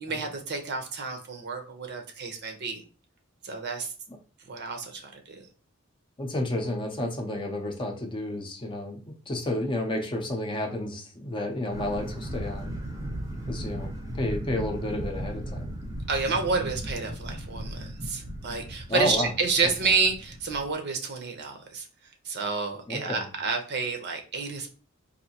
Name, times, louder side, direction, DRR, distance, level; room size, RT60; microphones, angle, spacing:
voice 1, 0.0-2.8 3.4-3.9 4.5-5.4 16.1-21.9 22.2-24.7, right 4 dB, 55° right, 4 dB, 0.7 m, -29 dB
voice 2, 6.2-12.7 13.5-15.7 18.9-19.3 22.9-23.3, left 1 dB, 25° left, 2 dB, 0.6 m, -31 dB
sound 1, 11.7-20.7, right 1 dB, 15° right, 0.7 m, -36 dB
4.1 x 2.7 x 2.8 m, 0.36 s
head